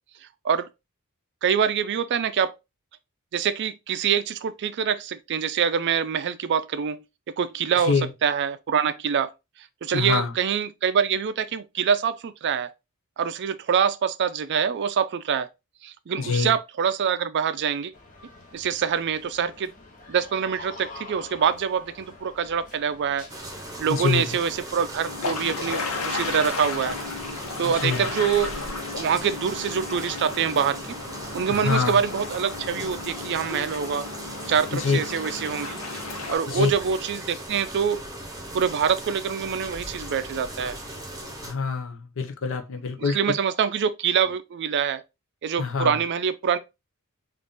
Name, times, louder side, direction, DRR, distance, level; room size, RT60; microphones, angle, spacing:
voice 1, 1.4-2.5 3.3-7.9 8.2-9.3 9.8-12.7 13.2-15.5 15.8-17.9 18.5-19.7 20.1-23.3 23.8-27.0 27.6-28.5 29.0-31.0 31.3-34.1 34.5-35.7 36.3-38.0 38.5-40.8 43.0-45.0 45.4-46.6, right 7 dB, 55° right, 0.4 m, -25 dB
voice 2, 9.9-10.3 16.2-16.5 23.9-24.2 27.6-28.1 31.5-32.0 34.7-35.0 36.5-36.7 41.4-43.3 45.6-46.0, left 5 dB, 65° left, 0.6 m, -25 dB
sound 1, 17.9-33.4, left 2 dB, 40° left, 1.1 m, -48 dB
sound 2, 23.3-41.5, right 1 dB, 15° right, 1.0 m, -38 dB
sound 3, 25.0-36.4, left 3 dB, 85° left, 0.9 m, -34 dB
3.9 x 2.5 x 3.5 m
head